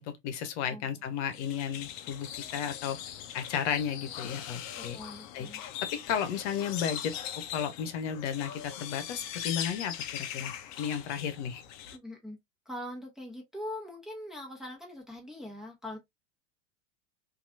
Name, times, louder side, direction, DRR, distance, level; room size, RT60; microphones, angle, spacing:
voice 1, 0.0-3.0 3.3-5.0 5.3-7.1 7.5-11.6, left 8 dB, 65° left, 1.0 m, -34 dB
sound 1, 1.3-12.0, left 10 dB, 50° left, 0.7 m, -40 dB
voice 2, 4.7-5.6 11.9-12.4 12.6-16.0, left 1 dB, ahead, 1.1 m, -42 dB
2.9 x 2.7 x 2.6 m
hypercardioid pair, 95°, 37 cm